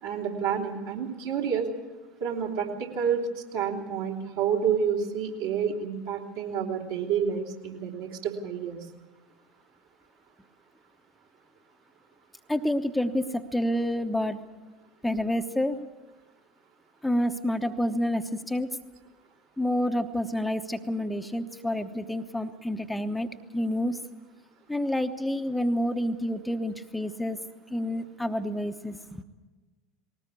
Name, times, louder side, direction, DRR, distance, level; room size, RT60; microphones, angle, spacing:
voice 1, 0.0-1.7 2.2-8.8, right 7 dB, 65° right, -1 dB, 3.2 m, -29 dB
voice 2, 12.5-14.4 15.0-15.8 17.0-18.7 19.6-24.0 24.7-27.4 27.7-29.2, left 1 dB, 5° left, 6 dB, 1.0 m, -28 dB
20.0 x 18.5 x 8.4 m, 1.2 s
figure-of-eight pair, 70°, 0 cm